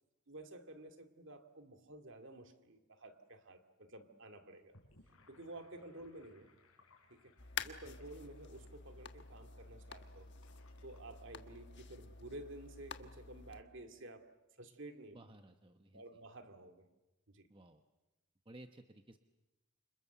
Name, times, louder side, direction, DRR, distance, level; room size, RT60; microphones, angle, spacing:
voice 1, 0.3-4.7 5.3-6.5 7.1-10.3 10.8-14.3 14.6-15.2 15.9-16.9 17.3-17.5, right 1 dB, 55° right, 6 dB, 2.3 m, -52 dB
Gurgling / Sink (filling or washing), 4.6-12.1, left 2 dB, 75° left, 5.3 m, -68 dB
sound 1, 7.4-13.6, left 6 dB, 50° left, 1.3 m, -49 dB
voice 2, 15.1-16.0 17.5-17.8 18.4-19.2, right 1 dB, 25° right, 7 dB, 0.9 m, -56 dB
29.0 x 26.5 x 6.9 m, 1.0 s
head